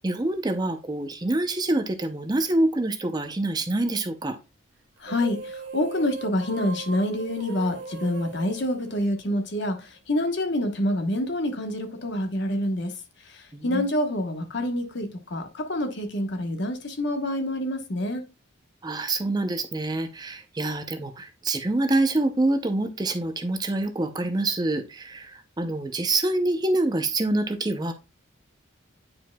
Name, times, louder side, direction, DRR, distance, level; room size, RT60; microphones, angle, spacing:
voice 1, 0.0-4.4 13.5-13.8 18.8-27.9, right 2 dB, 20° right, 0.5 m, -26 dB
voice 2, 5.0-12.9 13.2-18.2, left 1 dB, 55° left, 1.1 m, -27 dB
sound 1, 5.0-9.7, right 4 dB, 60° right, 0.7 m, -39 dB
9.0 x 4.9 x 2.2 m
head